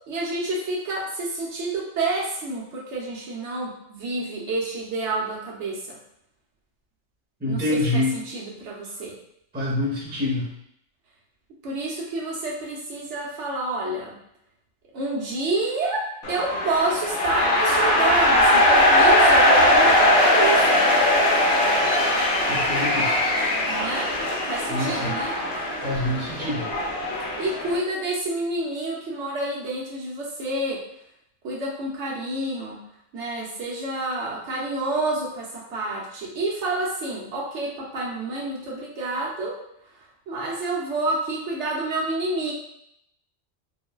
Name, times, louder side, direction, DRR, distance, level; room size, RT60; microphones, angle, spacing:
voice 1, 0.1-6.0 7.5-9.1 11.6-14.2 14.9-20.9 23.7-24.1 24.4-25.3 27.4-30.8 31.4-32.8 33.1-39.6 40.3-42.5, right 2 dB, 70° right, -3 dB, 1.0 m, -29 dB
voice 2, 7.4-8.1 9.5-10.5 22.5-23.1 24.7-25.1 25.8-26.7, left 1 dB, 15° right, -4 dB, 0.4 m, -26 dB
sound 1, 16.2-27.8, left 1 dB, 60° left, 0.8 m, -20 dB
3.8 x 2.1 x 2.2 m, 0.74 s
omnidirectional pair, 1.3 m